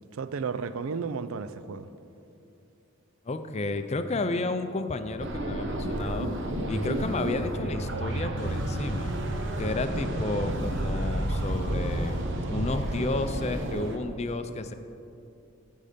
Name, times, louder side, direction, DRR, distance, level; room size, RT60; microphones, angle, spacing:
voice 1, 0.1-1.9, right 5 dB, 80° right, 13 dB, 0.4 m, -33 dB
voice 2, 3.3-6.3 6.7-9.1 9.6-12.2 12.5-14.7, left 2 dB, 30° left, 9 dB, 0.5 m, -32 dB
sound 1, 5.2-14.0, right 1 dB, 60° right, 0.9 m, -30 dB
15.0 x 5.5 x 5.2 m, 2.7 s
head